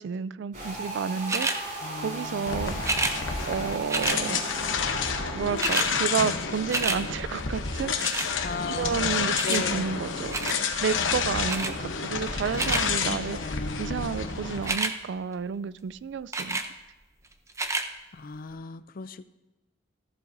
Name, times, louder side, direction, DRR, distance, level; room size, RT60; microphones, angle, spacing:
voice 1, 0.0-3.1 3.5-4.4 5.3-8.3 8.7-10.5 10.8-16.6, right 6 dB, 65° right, 18 dB, 0.3 m, -31 dB
sound 1, 0.5-5.6, right 1 dB, 45° right, 4.6 m, -37 dB
sound 2, 1.3-1.6 2.8-3.2 3.9-4.2 5.1-5.2 5.4-5.9 6.3-7.0 8.0-8.3 9.4-9.6 10.3-10.6 11.5-11.7 12.3-12.8 14.5-14.9 16.3-16.7 17.5-17.9 18.5-18.6, right 3 dB, 15° right, 0.6 m, -28 dB
voice 2, 1.8-2.5 8.4-10.0 13.3-14.4 18.1-19.2, left 4 dB, 45° left, 14 dB, 0.4 m, -37 dB
sound 3, 2.5-14.7, left 5 dB, 80° left, 1.0 m, -29 dB
14.5 x 12.5 x 2.7 m, 1.0 s
head